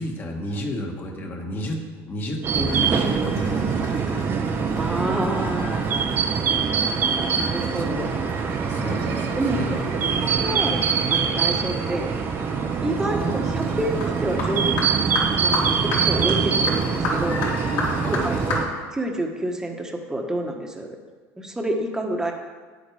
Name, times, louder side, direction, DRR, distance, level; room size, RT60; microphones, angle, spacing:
voice 1, 0.0-4.0 7.8-8.0 8.7-10.4 18.0-18.4, left 1 dB, 30° left, 2 dB, 1.7 m, -32 dB
sound 1, 2.4-18.6, right 6 dB, 35° right, 0.8 m, -24 dB
sound 2, 2.7-18.6, left 2 dB, 70° left, 3.7 m, -33 dB
voice 2, 4.8-5.9 7.2-8.2 9.4-9.6 10.2-10.8 11.1-12.1 12.8-14.7 15.4-21.0 21.4-22.3, right 1 dB, 10° right, 2 dB, 1.3 m, -28 dB
Laughter, 8.3-13.2, right 6 dB, 65° right, 1.9 m, -38 dB
10.0 x 8.5 x 5.0 m, 1.4 s
cardioid pair, 135°, 7 cm